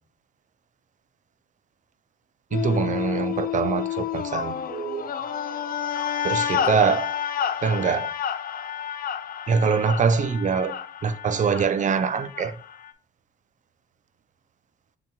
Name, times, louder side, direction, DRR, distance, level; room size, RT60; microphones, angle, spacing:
sound 1, 2.5-12.9, left 9 dB, 50° left, 0.4 m, -30 dB
voice 1, 2.5-5.1 6.2-7.1 7.6-8.1 9.5-12.5, right 6 dB, 40° right, 0.5 m, -24 dB
6.9 x 2.9 x 2.3 m
cardioid pair, 90°, 20 cm